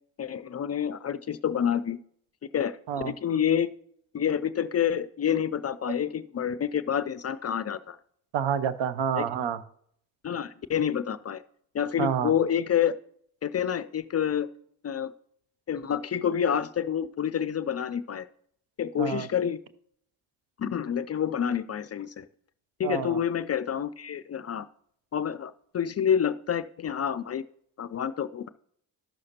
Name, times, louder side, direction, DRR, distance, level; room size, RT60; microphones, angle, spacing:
voice 1, 0.2-2.0 2.5-3.7 4.1-8.0 9.2-9.3 10.2-11.4 11.7-12.9 13.4-14.5 14.8-15.1 15.7-18.3 18.8-19.6 20.6-22.3 22.8-24.7 25.1-27.4 27.8-28.5, left 8 dB, 35° left, 15 dB, 0.4 m, -28 dB
voice 2, 8.3-9.6 12.0-12.3 19.0-19.3 22.8-23.2, right 8 dB, 65° right, 13 dB, 0.7 m, -28 dB
13.0 x 6.4 x 2.9 m, 0.67 s
hypercardioid pair, 40°, 48 cm